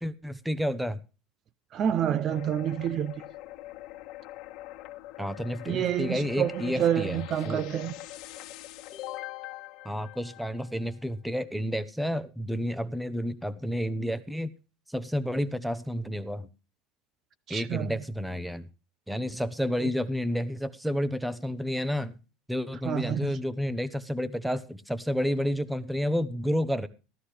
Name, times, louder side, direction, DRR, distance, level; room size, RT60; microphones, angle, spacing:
voice 1, 0.0-1.0 5.2-7.6 9.8-14.5 14.9-16.5 17.5-18.7 19.1-22.2 22.5-26.9, equal, 5° right, 0.9 m, -30 dB
voice 2, 1.7-3.2 5.7-8.0 17.5-17.9 19.8-19.9 22.8-23.3, right 10 dB, 40° right, 0.6 m, -28 dB
sound 1, 2.3-10.9, left 16 dB, 55° left, 1.5 m, -43 dB
13.5 x 13.0 x 3.3 m
supercardioid pair, 130°, 0 cm